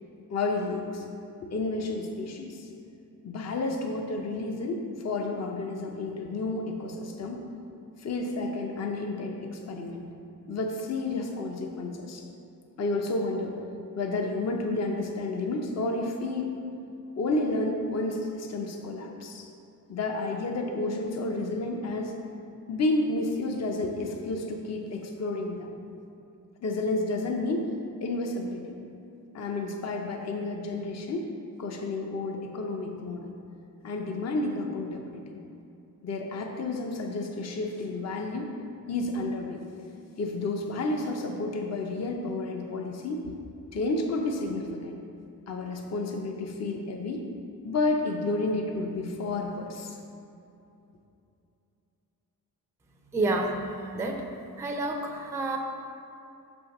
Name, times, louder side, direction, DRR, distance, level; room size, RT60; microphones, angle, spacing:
voice 1, 0.3-1.0 1.4-2.7 3.2-7.4 8.0-10.1 10.5-12.2 12.8-13.6 14.0-16.5 17.2-19.5 19.9-22.1 22.7-25.7 26.6-27.7 28.0-28.7 29.3-31.3 31.6-33.3 33.8-35.4 36.0-38.5 38.9-39.6 40.2-43.2 43.7-45.0 45.5-47.2 47.6-50.0, left 2 dB, 45° left, 2 dB, 0.6 m, -31 dB
voice 2, 53.1-53.7 53.9-54.3 54.6-55.6, right 2 dB, 10° right, 2 dB, 0.4 m, -29 dB
5.7 x 4.4 x 6.4 m, 2.7 s
wide cardioid pair, 170°, 36 cm